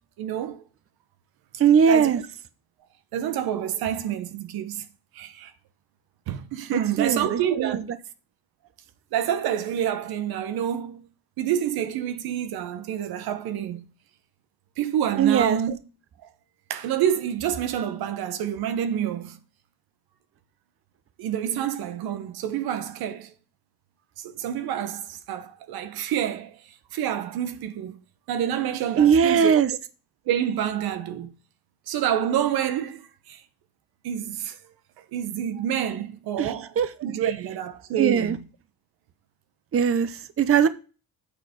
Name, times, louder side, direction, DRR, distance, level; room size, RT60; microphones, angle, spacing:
voice 1, 0.2-0.6 1.9-2.2 3.1-4.9 5.1-5.5 6.3-7.8 9.1-11.0 11.4-13.8 14.8-15.7 16.7-19.4 21.2-23.3 24.2-26.6 26.9-28.0 28.3-29.6 30.3-31.3 31.9-33.4 34.0-34.6 35.1-36.8 37.0-38.4, right 10 dB, 80° right, 0.9 m, -28 dB
voice 2, 1.6-2.2 6.7-7.8 15.2-15.6 29.0-29.7 36.4-36.9 38.0-38.4 39.7-40.7, right 7 dB, 40° right, 0.8 m, -20 dB
9.0 x 4.2 x 4.9 m
supercardioid pair, 75°, 37 cm